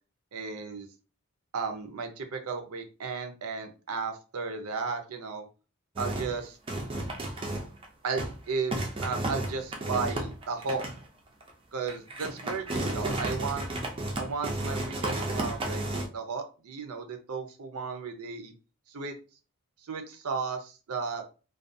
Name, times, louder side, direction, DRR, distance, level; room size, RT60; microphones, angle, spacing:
voice 1, 0.3-0.9 1.5-5.5 6.0-6.6 8.0-8.8 9.0-10.8 11.7-13.7 14.2-15.8 16.1-18.5 18.9-19.1 19.9-21.2, right 4 dB, 80° right, 6 dB, 0.5 m, -34 dB
sound 1, 6.0-6.4 6.7-7.9 8.1-8.4 8.7-11.0 11.4-11.5 11.9-16.1, right 1 dB, 25° right, 0.4 m, -33 dB
2.3 x 2.3 x 2.6 m, 0.34 s
head